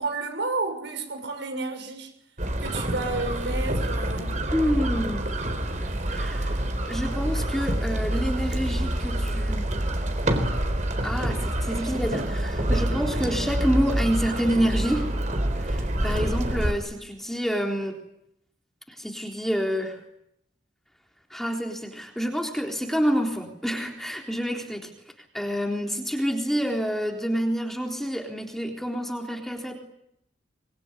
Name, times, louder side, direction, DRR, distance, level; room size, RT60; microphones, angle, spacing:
voice 1, 0.0-2.1 2.6-4.4, right 3 dB, 75° right, 6.1 m, -31 dB
sound 1, 2.4-16.7, right 1 dB, 40° right, 4.1 m, -27 dB
voice 2, 4.5-5.3 6.1-6.6 6.9-9.7 11.0-15.1 15.5-17.9 18.9-20.0 21.3-24.9 25.3-29.8, equal, ahead, 3.7 m, -28 dB
25.0 x 24.0 x 10.0 m
head